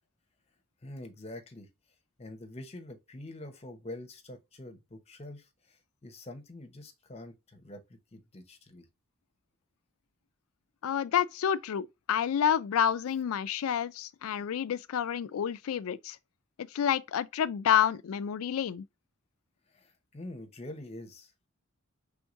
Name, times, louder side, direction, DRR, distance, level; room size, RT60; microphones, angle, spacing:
voice 1, 0.8-1.7 2.2-5.8 6.0-7.8 8.1-8.8 14.4-14.5 19.7-21.3, left 1 dB, 30° left, 0.8 m, -45 dB
voice 2, 10.8-16.2 16.6-18.9, left 9 dB, 80° left, 0.4 m, -29 dB
4.6 x 3.5 x 2.5 m
head